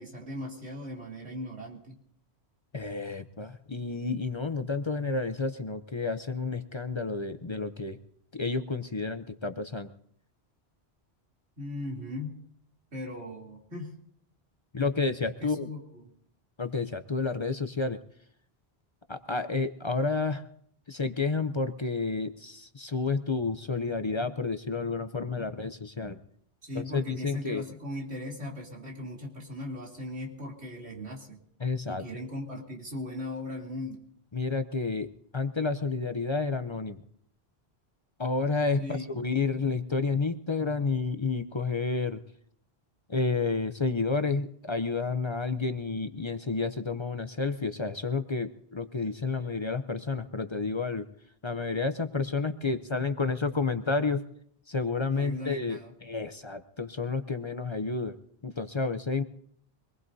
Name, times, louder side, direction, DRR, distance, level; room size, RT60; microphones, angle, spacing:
voice 1, 0.0-2.0 11.6-12.4 12.9-14.0 15.2-16.0 26.6-31.4 31.9-34.0 38.8-39.1 55.1-55.9, left 1 dB, 80° right, -3 dB, 3.4 m, -38 dB
voice 2, 2.7-8.0 8.3-9.9 14.7-15.7 16.6-18.0 19.1-20.4 20.9-26.2 26.7-27.6 31.6-32.0 34.3-37.0 38.2-42.2 43.1-51.1 51.4-54.2 54.7-58.2 58.4-59.2, left 4 dB, 35° left, 9 dB, 0.6 m, -30 dB
24.5 x 19.5 x 2.7 m, 0.67 s
omnidirectional pair, 1.1 m